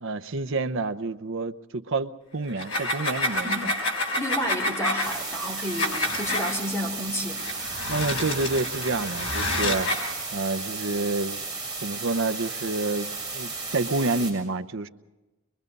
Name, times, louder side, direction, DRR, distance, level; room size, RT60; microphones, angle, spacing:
voice 1, 0.0-3.7 7.9-9.9 10.3-11.4 11.8-14.9, right 3 dB, 65° right, 10 dB, 0.8 m, -28 dB
sound 1, 2.5-6.6 7.4-10.1, left 1 dB, 70° left, 4.8 m, -29 dB
voice 2, 4.2-7.4, equal, 15° left, -1 dB, 3.3 m, -31 dB
sound 2, 5.0-14.3, right 3 dB, 5° right, 7.0 m, -34 dB
23.5 x 22.5 x 5.4 m, 1.1 s
head